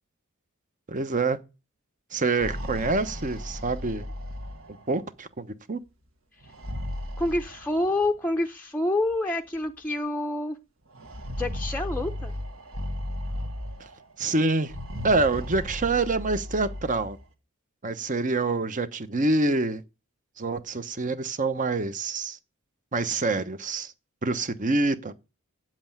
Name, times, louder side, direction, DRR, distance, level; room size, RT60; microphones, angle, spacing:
voice 1, 0.9-1.4 2.1-4.0 4.9-5.8 14.2-14.7 15.0-17.2 17.8-19.8 20.4-22.4 22.9-23.9 24.2-25.1, right 3 dB, 35° right, 1.0 m, -26 dB
sound 1, 2.2-5.1 6.4-8.1 9.1-9.2 9.6-9.7 10.9-14.1 14.6-17.2, equal, 65° right, 1.9 m, -35 dB
voice 2, 7.2-10.6 11.4-12.3, left 2 dB, 10° left, 0.7 m, -27 dB
8.8 x 7.8 x 9.1 m
head